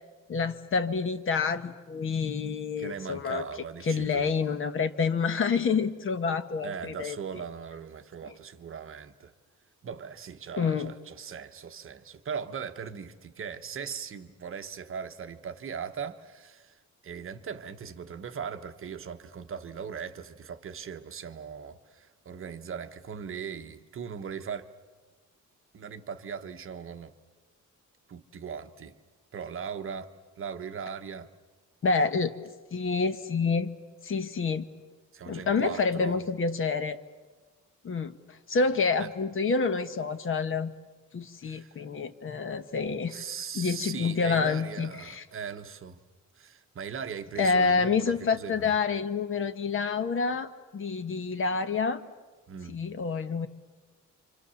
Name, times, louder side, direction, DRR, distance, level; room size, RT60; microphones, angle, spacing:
voice 1, 0.3-3.4 3.9-7.2 10.6-10.9 31.8-32.3 32.7-33.7 34.0-34.7 35.3-37.0 37.8-38.2 38.5-40.7 41.1-43.2 43.5-45.2 47.4-52.0 52.7-53.5, left 4 dB, 40° left, 1.1 m, -28 dB
voice 2, 2.8-4.3 6.6-9.3 9.8-24.7 25.7-27.1 28.1-29.0 29.3-30.1 30.4-31.3 35.1-36.2 39.0-39.1 41.4-41.8 43.1-46.0 46.4-48.7 52.5-52.8, right 7 dB, 45° right, 1.1 m, -39 dB
28.5 x 26.0 x 7.1 m
wide cardioid pair, 170°, 30 cm